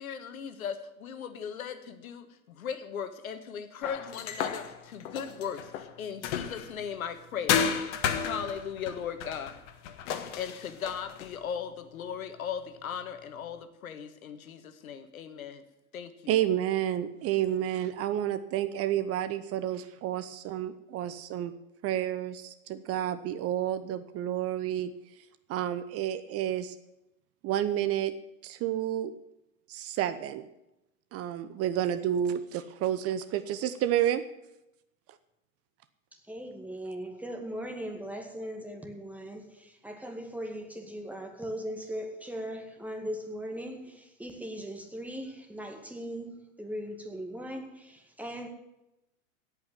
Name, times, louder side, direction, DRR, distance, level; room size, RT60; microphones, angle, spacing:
voice 1, 0.0-9.6 10.4-15.6 15.9-16.3, left 7 dB, 80° left, 1.5 m, -38 dB
sound 1, 3.8-6.8 7.5-11.4, left 8 dB, 55° left, 1.6 m, -33 dB
voice 2, 16.3-21.5 21.8-24.9 25.5-26.8 27.4-28.1 28.4-29.1 29.7-30.5 31.1-34.2, right 11 dB, 35° right, 0.9 m, -30 dB
voice 3, 36.1-48.5, equal, 5° right, 2.1 m, -39 dB
17.0 x 5.7 x 9.2 m
hypercardioid pair, 105°, 42 cm